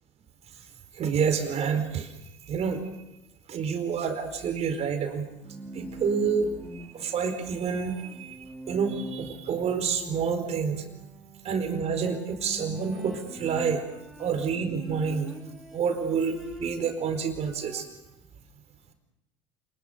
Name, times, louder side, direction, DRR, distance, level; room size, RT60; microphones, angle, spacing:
voice 1, 0.9-2.1 2.5-2.8 3.5-5.3 5.7-10.8 11.4-13.9 14.2-15.3 15.7-17.9, right 6 dB, 45° right, 7 dB, 4.6 m, -28 dB
Bowed string instrument, 5.3-17.0 17.3-18.1, equal, ahead, 5.3 m, -43 dB
27.5 x 20.5 x 6.8 m, 0.91 s
hypercardioid pair, 75°, 15 cm